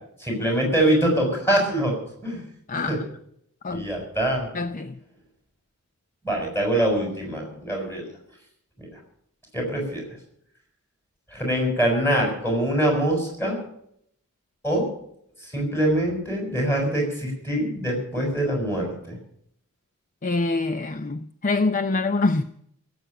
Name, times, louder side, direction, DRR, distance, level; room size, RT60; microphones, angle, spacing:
voice 1, 0.2-2.0 2.2-2.4 2.9-3.0 3.7-4.5 6.2-8.0 8.8-8.9 9.5-10.0 11.3-13.6 14.6-14.9 15.5-19.2, right 1 dB, 10° left, 6.4 m, -24 dB
voice 2, 2.7-3.0 3.6-3.9 4.5-5.0 20.2-22.4, left 3 dB, 35° left, 0.5 m, -25 dB
17.0 x 8.1 x 10.0 m
head